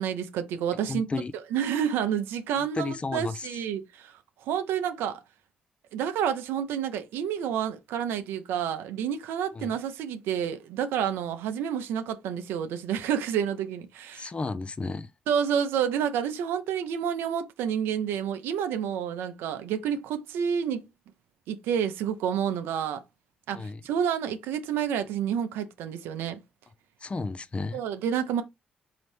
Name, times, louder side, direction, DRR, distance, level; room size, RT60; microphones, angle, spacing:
voice 1, 0.0-1.1 1.5-4.1 4.4-5.2 5.9-14.3 15.3-20.9 21.5-23.0 23.5-26.4 27.7-28.4, right 8 dB, 85° right, 0.6 m, -29 dB
voice 2, 0.9-1.3 2.6-3.5 9.6-9.7 14.1-15.1 23.5-23.8 27.0-27.8, left 3 dB, 30° left, 0.5 m, -33 dB
4.0 x 2.8 x 3.2 m
supercardioid pair, 60°, 4 cm